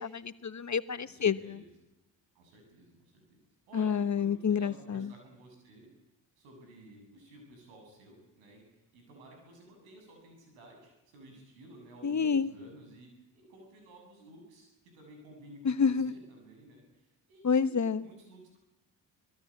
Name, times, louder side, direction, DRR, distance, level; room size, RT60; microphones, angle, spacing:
voice 1, 0.0-1.6 3.7-5.1 12.0-12.5 15.6-16.1 17.4-18.0, left 6 dB, 35° left, 13 dB, 1.3 m, -28 dB
voice 2, 1.0-1.7 2.3-3.4 3.7-5.9 6.4-18.6, right 1 dB, 85° right, 3 dB, 7.7 m, -54 dB
25.0 x 19.0 x 8.7 m, 0.95 s
hypercardioid pair, 45°, 47 cm